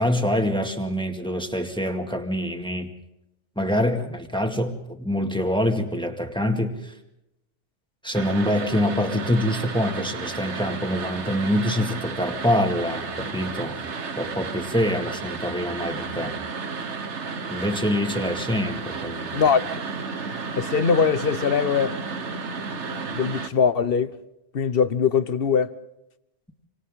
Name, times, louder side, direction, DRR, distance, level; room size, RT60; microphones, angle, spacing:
voice 1, 0.0-2.9 3.6-7.0 8.0-13.8 14.2-16.4 17.5-19.4, equal, 5° left, 2.1 m, -25 dB
sound 1, 8.1-23.5, right 4 dB, 65° right, 1.6 m, -33 dB
voice 2, 20.6-22.0 23.1-24.2 24.5-25.7, left 6 dB, 50° left, 1.2 m, -21 dB
28.5 x 25.5 x 3.8 m
omnidirectional pair, 1.3 m